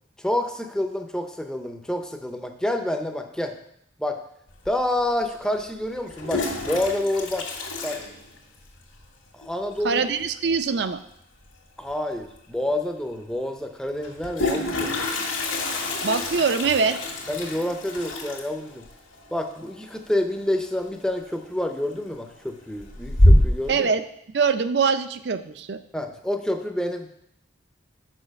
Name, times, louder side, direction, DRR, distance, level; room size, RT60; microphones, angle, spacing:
voice 1, 0.2-3.5 4.0-4.2 4.7-7.5 7.8-8.0 9.3-10.0 11.8-15.0 17.3-18.9 19.3-23.9 25.9-27.1, left 1 dB, 5° left, 5 dB, 0.5 m, -28 dB
Toilet flush, 4.7-4.8 5.9-8.8 9.0-9.1 9.4-9.5 9.8-10.2 11.9-12.0 12.3-12.4 14.0-20.7 21.0-21.4 21.8-22.4 22.8-23.8, left 1 dB, 75° left, 1.7 m, -25 dB
voice 2, 9.8-11.0 16.0-17.0 23.7-24.0 24.3-25.8, right 5 dB, 55° right, 11 dB, 0.4 m, -23 dB
6.2 x 5.7 x 5.2 m, 0.75 s
head